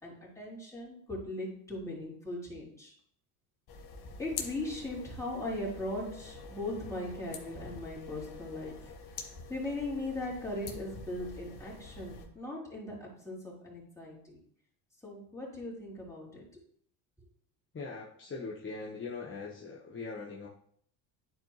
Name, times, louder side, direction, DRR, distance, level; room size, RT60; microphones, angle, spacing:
voice 1, 0.0-2.9 4.2-14.4 15.0-16.4, left 1 dB, 5° left, -5 dB, 3.4 m, -39 dB
sound 1, 3.7-12.3, left 4 dB, 50° left, 1.5 m, -46 dB
voice 2, 17.7-20.5, left 4 dB, 25° left, -3 dB, 1.2 m, -41 dB
10.5 x 4.5 x 3.1 m, 0.63 s
supercardioid pair, 85°, 50 cm